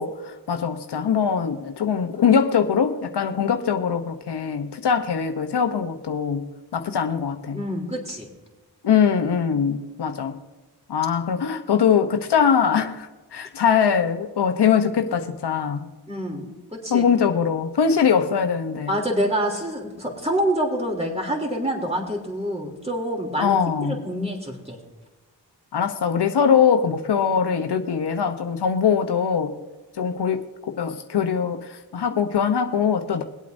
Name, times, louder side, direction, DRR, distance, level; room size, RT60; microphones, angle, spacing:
voice 1, 0.0-7.6 8.8-10.4 10.9-15.9 16.9-18.9 23.4-24.0 25.7-29.6 30.0-30.4 30.7-33.2, left 7 dB, 80° left, 6 dB, 0.9 m, -22 dB
voice 2, 7.5-8.3 16.1-17.1 18.2-18.3 18.9-24.8, equal, 15° right, 0 dB, 3.1 m, -27 dB
22.5 x 8.3 x 2.7 m, 1.2 s
cardioid pair, 45°, 40 cm